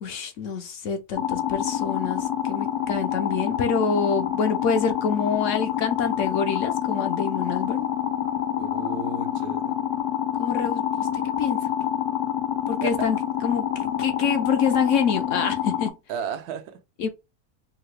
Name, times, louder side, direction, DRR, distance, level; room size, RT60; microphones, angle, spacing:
voice 1, 0.0-7.9 10.4-11.7 12.7-13.2 13.4-15.9 17.0-17.1, left 6 dB, 65° left, 0.8 m, -26 dB
sound 1, 1.2-15.9, left 10 dB, 85° left, 1.2 m, -27 dB
voice 2, 8.6-9.8 12.8-13.1 16.1-16.8, right 7 dB, 85° right, 1.1 m, -34 dB
3.7 x 2.1 x 3.1 m
omnidirectional pair, 1.6 m